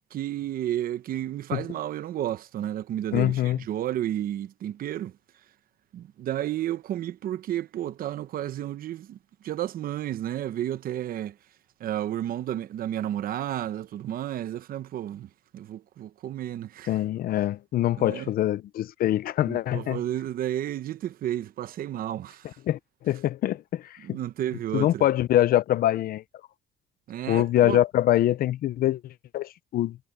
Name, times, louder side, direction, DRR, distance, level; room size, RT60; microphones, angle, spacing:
voice 1, 0.1-5.1 5.9-9.2 9.4-11.4 11.8-17.0 18.0-18.3 19.5-22.5 24.0-25.0 27.1-27.8, right 12 dB, 60° right, 0.9 m, -32 dB
voice 2, 3.1-3.6 16.9-20.0 22.7-22.8 23.0-24.2 24.7-26.2 27.3-30.0, left 13 dB, 60° left, 0.7 m, -24 dB
cardioid pair, 110°, 17 cm